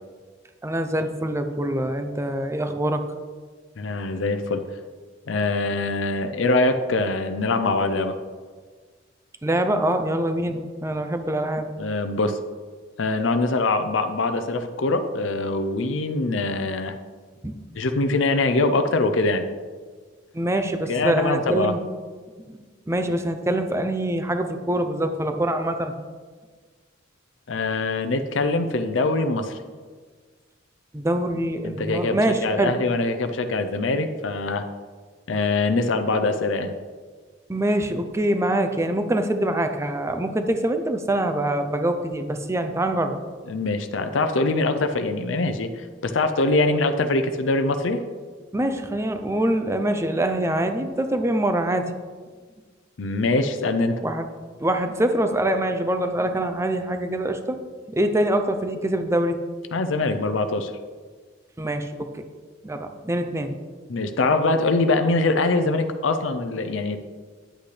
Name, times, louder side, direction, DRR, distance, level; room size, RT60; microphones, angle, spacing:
voice 1, 0.6-3.0 9.4-11.7 17.4-17.6 20.3-21.8 22.5-22.6 22.9-25.9 30.9-32.8 37.5-43.2 48.5-51.9 54.0-54.3 54.6-57.6 57.9-59.4 61.6-62.2 62.6-63.5 63.9-64.0, right 1 dB, 15° right, 7 dB, 0.6 m, -24 dB
voice 2, 3.8-4.6 5.3-8.2 11.8-12.4 13.0-17.0 17.8-19.4 20.9-21.7 27.5-29.6 31.6-34.6 35.3-36.7 43.5-48.0 53.0-54.0 59.7-60.7 63.9-67.0, left 2 dB, 85° left, 8 dB, 0.6 m, -23 dB
10.0 x 8.4 x 3.3 m, 1.5 s
head